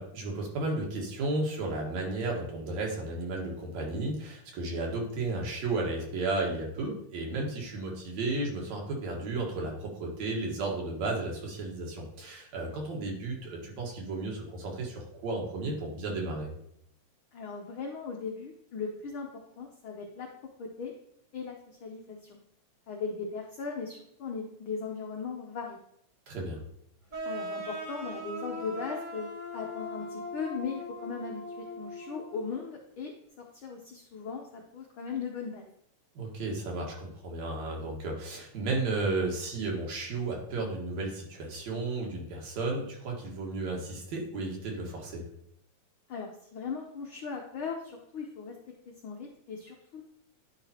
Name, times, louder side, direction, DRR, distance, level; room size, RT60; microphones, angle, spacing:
voice 1, 0.0-16.5 26.3-26.6 36.2-45.2, right 2 dB, 70° right, -1 dB, 2.7 m, -33 dB
voice 2, 17.3-19.3 19.6-20.3 20.6-20.9 21.3-22.2 22.9-25.8 27.2-33.1 33.5-35.7 46.1-48.5 49.0-50.0, left 5 dB, 75° left, 0 dB, 1.1 m, -38 dB
sound 1, 27.1-32.6, equal, 20° right, 1.5 m, -40 dB
10.5 x 4.9 x 2.8 m, 0.71 s
omnidirectional pair, 3.3 m